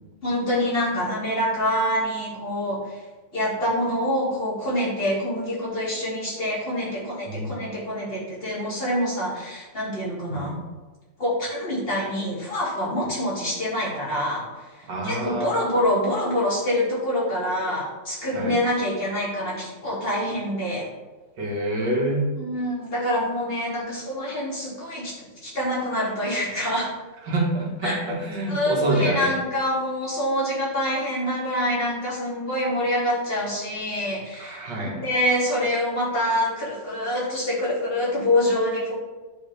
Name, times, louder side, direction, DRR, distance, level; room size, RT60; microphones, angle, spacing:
voice 1, 0.2-2.8 3.3-10.6 11.2-14.5 15.0-20.9 22.4-25.1 25.4-26.9 27.8-28.0 28.5-38.9, left 1 dB, 30° left, -6 dB, 2.8 m, -26 dB
voice 2, 7.3-7.6 10.3-10.6 14.9-15.5 18.3-18.5 21.4-22.3 27.2-29.3 34.4-35.0, right 1 dB, 70° right, -1 dB, 2.2 m, -26 dB
10.5 x 5.3 x 3.4 m, 1.2 s
omnidirectional pair, 2.0 m